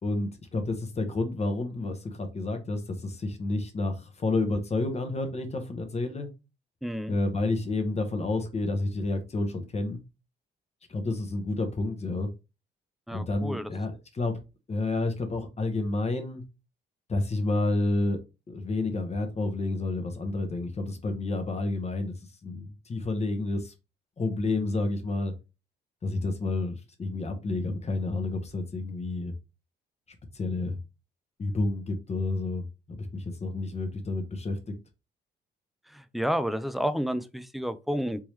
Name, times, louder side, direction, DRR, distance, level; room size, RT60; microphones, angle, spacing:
voice 1, 0.0-6.3 7.1-10.0 10.9-12.3 13.1-14.3 14.7-16.4 17.1-18.2 18.5-22.2 22.4-23.7 24.2-25.3 26.0-29.3 30.3-30.8 31.4-34.6, left 2 dB, 35° left, 1.0 m, -30 dB
voice 2, 6.8-7.2 13.1-13.7 35.9-38.2, equal, ahead, 0.4 m, -30 dB
3.6 x 3.0 x 3.1 m
cardioid pair, 90°, 20 cm